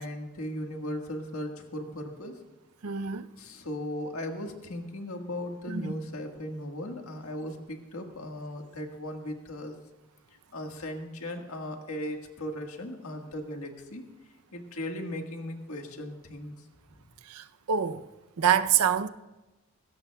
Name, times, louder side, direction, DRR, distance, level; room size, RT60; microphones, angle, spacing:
voice 1, 0.0-2.3 3.4-9.7 10.5-14.0 14.5-16.5, left 1 dB, 75° left, 1.7 m, -37 dB
voice 2, 2.8-3.3 5.7-5.9 17.3-18.1 18.4-19.1, right 8 dB, 85° right, 0.6 m, -26 dB
20.5 x 16.5 x 2.3 m
head